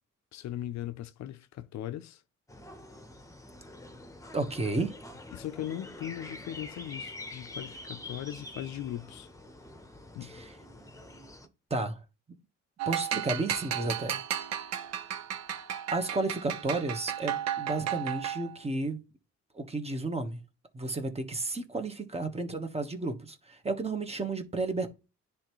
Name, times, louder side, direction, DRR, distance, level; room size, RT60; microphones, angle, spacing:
voice 1, 0.3-2.2 5.3-9.3 10.1-10.3, left 12 dB, 65° left, 0.5 m, -39 dB
sound 1, 2.5-11.5, left 2 dB, 10° left, 0.9 m, -46 dB
voice 2, 4.3-4.9 10.2-10.5 11.7-12.0 12.9-14.2 15.9-19.0 19.5-20.4 20.7-24.9, right 2 dB, 20° right, 1.2 m, -32 dB
sound 2, 12.8-18.6, right 10 dB, 60° right, 0.8 m, -34 dB
10.0 x 3.4 x 3.1 m
cardioid pair, 90°, 30 cm